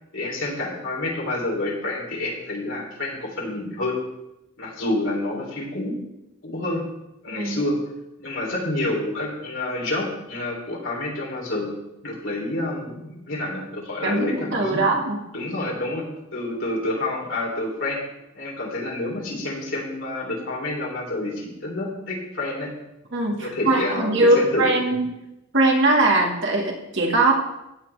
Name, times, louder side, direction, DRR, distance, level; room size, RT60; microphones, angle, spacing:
voice 1, 0.1-4.0 4.6-6.0 6.4-6.9 7.2-7.8 8.2-11.7 12.0-14.9 15.3-18.0 18.4-22.7 23.4-24.7, left 2 dB, 65° left, -2 dB, 3.6 m, -28 dB
voice 2, 14.0-15.2 23.1-25.1 25.5-27.3, right 2 dB, 60° right, 0 dB, 2.1 m, -21 dB
16.0 x 9.0 x 3.5 m, 0.92 s
head